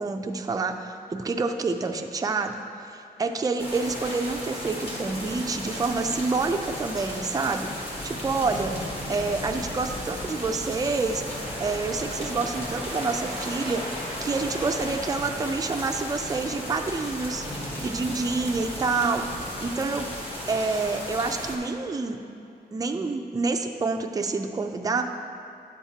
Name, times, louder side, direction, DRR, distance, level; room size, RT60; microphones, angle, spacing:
voice 1, 0.0-2.5 2.9-8.7 9.1-11.2 11.6-17.5 17.8-20.1 20.5-22.2 22.7-25.0, right 3 dB, 20° right, 4 dB, 0.4 m, -28 dB
sound 1, 3.6-21.6, left 1 dB, 35° left, 1.3 m, -35 dB
10.0 x 7.2 x 2.8 m, 2.7 s
wide cardioid pair, 155°, 17 cm